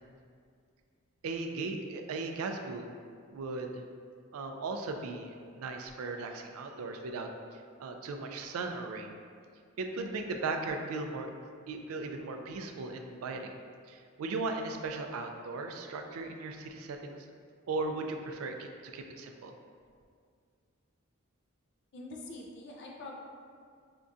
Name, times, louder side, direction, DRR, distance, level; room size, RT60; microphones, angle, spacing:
voice 1, 1.2-2.9 3.3-3.8 4.3-7.3 7.8-9.1 9.8-11.3 11.7-13.5 13.9-17.3 17.7-19.5, right 3 dB, 75° right, 4 dB, 0.3 m, -37 dB
voice 2, 21.9-23.2, left 2 dB, 50° left, -1 dB, 0.4 m, -44 dB
5.2 x 2.3 x 2.5 m, 2.1 s
head